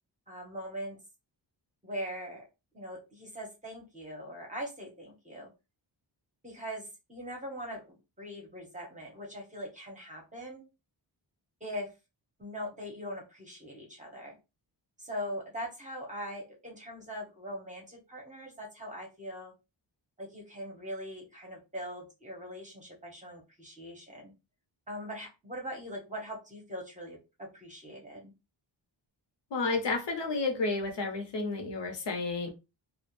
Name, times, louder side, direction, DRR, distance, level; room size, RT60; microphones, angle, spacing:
voice 1, 0.3-1.0 1.8-2.4 2.7-5.5 6.4-10.6 11.6-11.9 12.4-14.4 15.0-19.5 20.2-24.3 24.9-27.2 27.5-28.3, equal, 15° right, 0.7 m, -41 dB
voice 2, 29.5-32.5, left 3 dB, 65° left, 0.8 m, -31 dB
2.4 x 2.1 x 2.9 m
wide cardioid pair, 175°, 46 cm